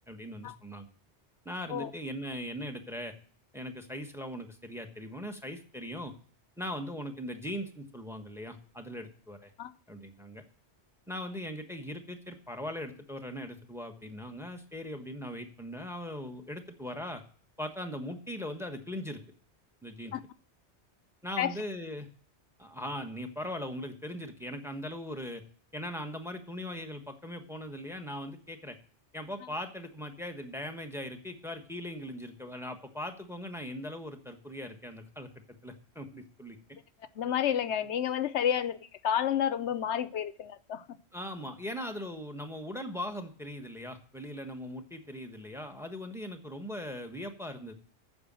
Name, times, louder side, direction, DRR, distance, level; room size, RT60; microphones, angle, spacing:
voice 1, 0.1-0.9 1.4-3.1 3.5-6.1 6.6-9.5 9.9-10.4 11.1-17.2 17.6-19.2 19.8-20.1 21.2-22.1 22.6-25.4 25.7-28.8 29.1-36.6 41.1-47.7, left 1 dB, ahead, 1.2 m, -40 dB
voice 2, 37.1-41.0, left 9 dB, 85° left, 1.0 m, -30 dB
9.5 x 6.8 x 7.5 m
omnidirectional pair, 1.1 m